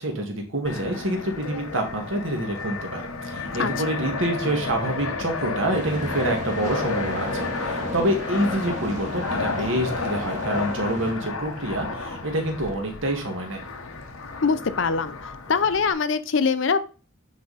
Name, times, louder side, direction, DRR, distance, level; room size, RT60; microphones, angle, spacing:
voice 1, 0.0-13.6, right 1 dB, 65° right, 3 dB, 1.8 m, -27 dB
Fixed-wing aircraft airplane, 0.7-15.9, left 3 dB, 80° left, 1.0 m, -32 dB
sound 1, 5.7-11.1, right 1 dB, 35° right, 1.4 m, -35 dB
voice 2, 14.4-15.2 15.5-16.8, left 5 dB, 60° left, 13 dB, 0.5 m, -22 dB
9.3 x 3.7 x 4.0 m, 0.38 s
head